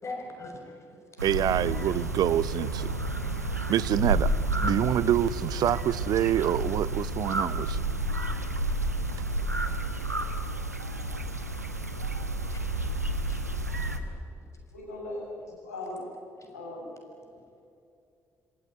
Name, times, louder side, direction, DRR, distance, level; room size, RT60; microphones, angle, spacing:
voice 1, 0.0-1.2 3.2-3.3 11.0-11.2 12.5-12.9 13.3-13.6 14.0-14.4 16.4-16.5, left 2 dB, 35° left, 6.5 m, -44 dB
voice 2, 1.2-2.9 3.4-4.3 4.6-7.8, right 11 dB, 55° right, 0.6 m, -26 dB
sound 1, 1.2-14.0, right 2 dB, 90° right, 1.1 m, -30 dB
voice 3, 14.7-15.2 15.6-16.0 16.5-16.9, left 2 dB, 80° left, 7.5 m, -38 dB
27.5 x 20.0 x 9.7 m
figure-of-eight pair, 45°, 8 cm